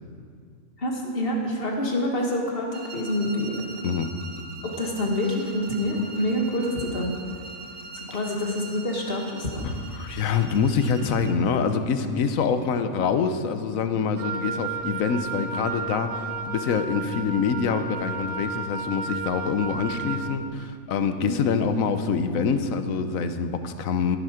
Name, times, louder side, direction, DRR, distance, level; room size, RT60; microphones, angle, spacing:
voice 1, 0.8-3.9 4.6-7.2 7.9-9.7 21.2-21.4, left 1 dB, 45° left, 0 dB, 1.9 m, -27 dB
sound 1, 2.7-11.4, right 4 dB, 45° right, 1.1 m, -42 dB
voice 2, 9.6-24.2, left 6 dB, 80° left, 9 dB, 1.2 m, -25 dB
Wind instrument woodwind instrument, 14.2-20.4, right 5 dB, 75° right, 1.2 m, -33 dB
15.5 x 10.5 x 5.0 m, 2.3 s
omnidirectional pair, 1.4 m